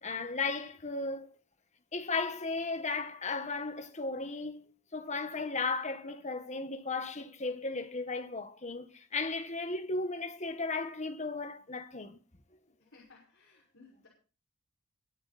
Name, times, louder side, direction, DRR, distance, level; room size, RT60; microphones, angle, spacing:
voice 1, 0.0-1.3 1.9-4.6 4.9-12.2, left 3 dB, 35° left, 1.5 m, -35 dB
voice 2, 12.8-14.1, left 3 dB, 70° left, 5.7 m, -59 dB
22.5 x 9.1 x 4.3 m
head